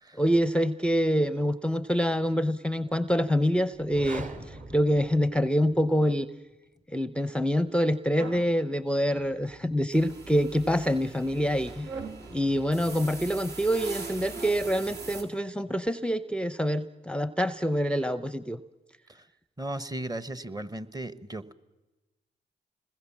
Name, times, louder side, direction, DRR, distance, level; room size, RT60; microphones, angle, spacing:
voice 1, 0.2-6.3 6.9-11.9 12.3-18.6, equal, 5° left, 14 dB, 0.7 m, -26 dB
sound 1, 3.7-5.9, right 3 dB, 45° right, 3.0 m, -42 dB
sound 2, 8.2-8.5 9.1-9.8 10.5-10.9 11.8-12.2, right 4 dB, 80° right, 2.3 m, -41 dB
sound 3, 9.9-15.2, right 3 dB, 60° right, 3.8 m, -42 dB
voice 2, 19.6-21.5, right 1 dB, 20° right, 15 dB, 1.2 m, -36 dB
26.5 x 21.0 x 7.3 m, 1.1 s
supercardioid pair, 55°, 19 cm